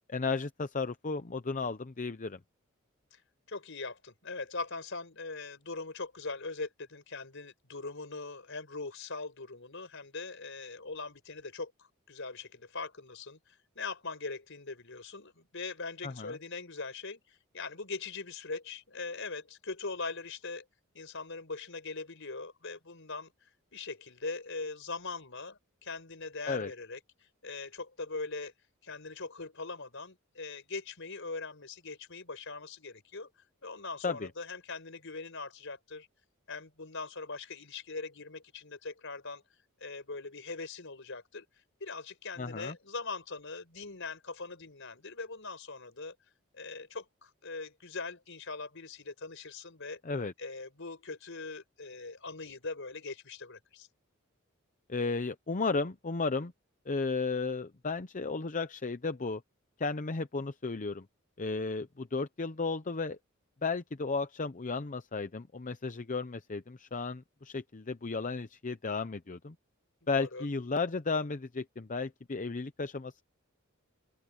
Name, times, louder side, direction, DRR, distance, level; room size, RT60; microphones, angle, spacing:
voice 1, 0.1-2.4 16.0-16.3 26.5-26.7 34.0-34.3 42.4-42.7 50.0-50.3 54.9-56.5 56.9-59.4 59.8-61.1 61.4-63.2 63.6-69.5 70.1-73.2, left 4 dB, 40° left, 0.7 m, -34 dB
voice 2, 3.5-20.6 20.9-23.3 23.7-28.5 28.8-33.3 33.6-36.1 36.5-39.4 39.8-41.5 41.8-46.2 46.5-50.0 50.4-53.9 70.0-70.5, left 3 dB, 65° left, 5.5 m, -41 dB
open air
head